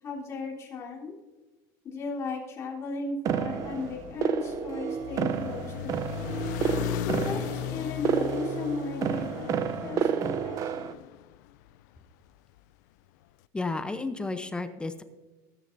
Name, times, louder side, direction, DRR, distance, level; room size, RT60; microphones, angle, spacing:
voice 1, 0.0-1.2 1.8-6.3 7.1-11.0, left 4 dB, 30° left, -3 dB, 3.5 m, -36 dB
sound 1, 3.3-10.9, right 8 dB, 35° right, 0.6 m, -30 dB
sound 2, 3.5-11.9, left 13 dB, 85° left, 0.4 m, -37 dB
voice 2, 13.5-15.0, left 3 dB, 10° left, 9 dB, 0.7 m, -32 dB
21.0 x 9.9 x 2.7 m, 1.2 s
cardioid pair, 150°, 9 cm